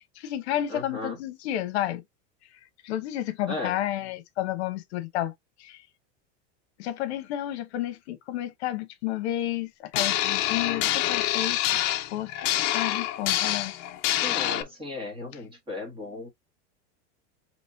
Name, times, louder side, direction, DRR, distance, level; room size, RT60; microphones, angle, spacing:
voice 1, 0.0-2.0 2.8-5.3 5.6-5.8 6.8-11.8 12.1-12.3 12.7-13.7, left 13 dB, 60° left, 0.9 m, -31 dB
voice 2, 0.7-1.2 3.5-3.8 14.2-16.3, left 2 dB, 15° right, 1.3 m, -36 dB
sound 1, 9.9-14.6, left 14 dB, 35° left, 0.6 m, -26 dB
6.0 x 3.0 x 2.6 m
supercardioid pair, 175°, 37 cm